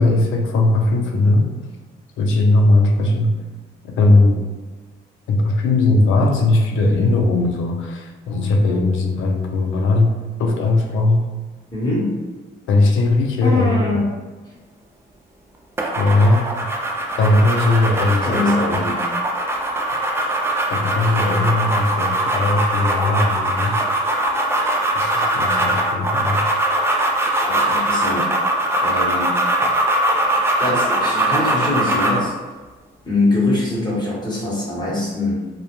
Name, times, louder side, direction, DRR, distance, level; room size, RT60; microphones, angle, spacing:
voice 1, 0.0-1.5 2.2-3.3 3.8-4.4 5.3-11.2 12.7-13.8 16.0-16.7 17.1-18.4 20.7-23.8 24.9-26.4, left 2 dB, 80° left, 2 dB, 0.5 m, -18 dB
voice 2, 11.7-12.2 13.4-14.0 18.2-19.0 27.5-28.3 28.8-29.3 30.3-32.3 33.0-35.4, left 2 dB, 20° left, -6 dB, 1.0 m, -23 dB
sound 1, 15.8-32.3, right 1 dB, 10° right, 0.4 m, -21 dB
2.1 x 2.0 x 2.9 m, 1.3 s
cardioid pair, 90°, 20 cm